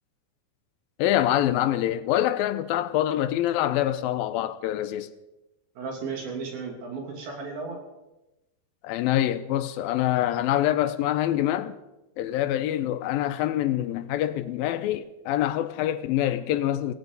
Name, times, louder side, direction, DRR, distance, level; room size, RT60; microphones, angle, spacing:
voice 1, 1.0-5.1 8.8-11.8 12.2-16.9, left 12 dB, 85° left, 2.5 m, -25 dB
voice 2, 5.8-7.8, right 4 dB, 80° right, 4.9 m, -34 dB
17.0 x 16.5 x 4.0 m
omnidirectional pair, 4.2 m